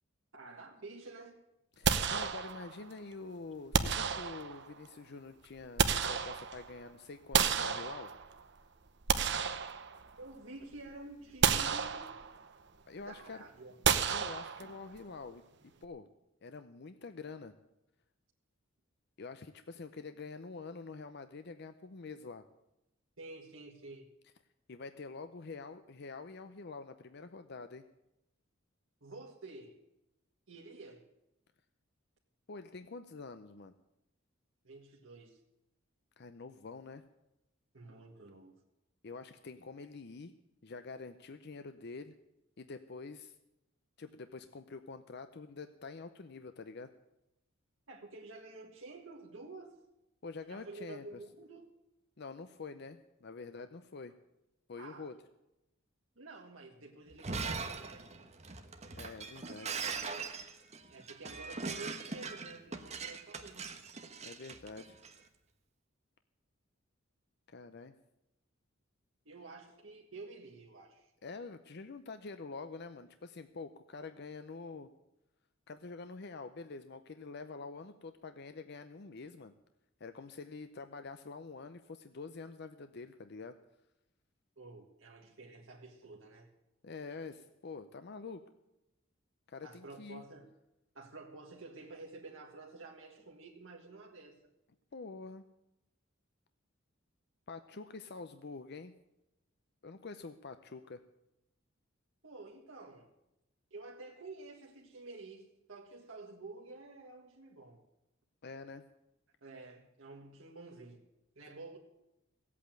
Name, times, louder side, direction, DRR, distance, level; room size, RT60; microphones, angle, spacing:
voice 1, 0.3-1.4 10.2-12.1 13.0-13.8 23.2-24.1 29.0-29.8 30.5-31.1 34.6-35.4 37.7-38.6 47.9-49.8 50.5-51.7 54.8-55.1 56.2-58.2 60.9-63.7 69.3-71.1 84.6-86.5 89.6-90.5 91.0-94.4 102.2-103.1 103.7-107.8 109.4-111.0 111.4-111.8, right 3 dB, 75° right, 0 dB, 1.7 m, -50 dB
voice 2, 1.8-8.1 12.9-13.4 14.1-15.4 15.8-16.1 16.4-17.5 19.2-22.4 24.7-27.8 32.5-33.7 36.2-37.0 39.0-40.3 40.6-42.1 42.6-43.3 44.0-46.9 50.2-51.2 52.2-54.1 54.7-55.1 58.9-59.8 64.2-65.0 67.5-67.9 71.2-74.9 75.7-79.5 80.0-83.6 86.8-88.4 89.5-90.3 94.9-95.4 97.5-98.9 99.8-101.0 108.4-108.8, left 4 dB, 55° left, 10 dB, 0.6 m, -46 dB
sound 1, 1.8-2.9 3.7-4.8 5.4-6.8 7.3-8.4 8.9-10.3 10.7-10.9 11.4-12.5 13.8-15.0, right 6 dB, 60° right, 0.9 m, -31 dB
Shatter, 57.1-65.1, right 4 dB, 35° right, 1.2 m, -41 dB
16.0 x 8.5 x 9.0 m, 0.89 s
head